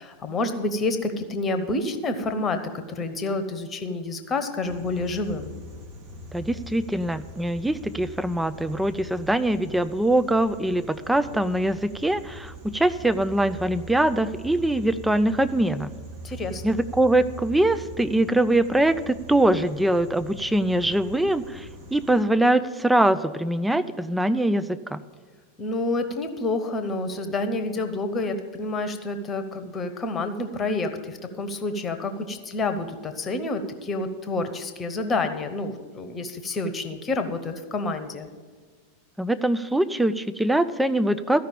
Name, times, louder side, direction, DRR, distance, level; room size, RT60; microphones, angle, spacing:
voice 1, 0.0-5.5 16.2-16.8 25.6-38.3, left 2 dB, 20° left, 8 dB, 1.1 m, -28 dB
sound 1, 4.6-22.2, right 1 dB, 45° right, 2.0 m, -42 dB
voice 2, 6.3-15.9 16.6-25.0 39.2-41.4, right 1 dB, 5° right, 12 dB, 0.4 m, -23 dB
14.0 x 5.6 x 8.9 m, 1.5 s
figure-of-eight pair, 90°, 0 cm